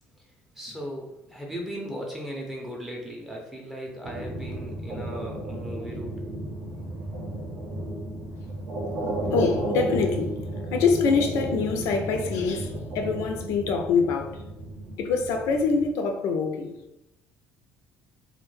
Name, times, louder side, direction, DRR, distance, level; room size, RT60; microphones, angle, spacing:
voice 1, 0.6-6.2 6.8-7.0, equal, 5° right, 0.5 m, -37 dB
sound 1, 4.0-15.9, right 1 dB, 60° right, 0.7 m, -33 dB
voice 2, 9.2-10.4 10.7-14.4 15.0-16.7, left 5 dB, 75° left, 0.4 m, -25 dB
2.1 x 2.0 x 3.1 m
cardioid pair, 105°, 5 cm